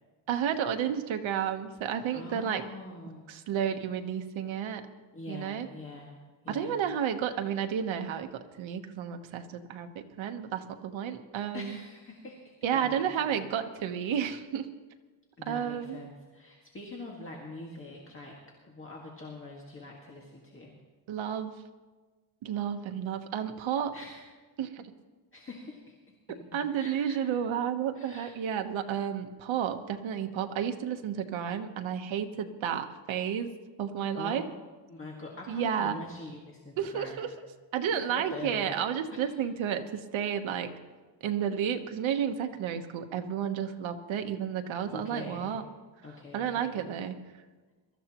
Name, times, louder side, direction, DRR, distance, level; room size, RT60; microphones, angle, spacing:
voice 1, 0.3-2.6 3.3-4.9 5.3-5.7 6.5-11.8 12.6-14.7 15.5-16.0 21.1-21.6 22.4-23.9 24.6-24.9 26.5-33.5 33.8-34.4 35.5-35.9 36.8-37.3 37.7-40.7 41.2-45.6 46.3-47.2, right 8 dB, 75° right, 6 dB, 1.1 m, -31 dB
voice 2, 2.1-3.3 5.1-6.2 6.4-6.8 11.5-13.3 15.4-18.4 18.6-20.7 23.9-24.2 25.3-26.0 26.7-27.2 28.0-28.4 34.2-34.5 34.9-37.2 37.9-38.8 44.9-45.6 46.0-46.8, left 2 dB, 25° left, -2 dB, 1.8 m, -44 dB
23.0 x 13.5 x 3.0 m, 1.3 s
cardioid pair, 145°, 47 cm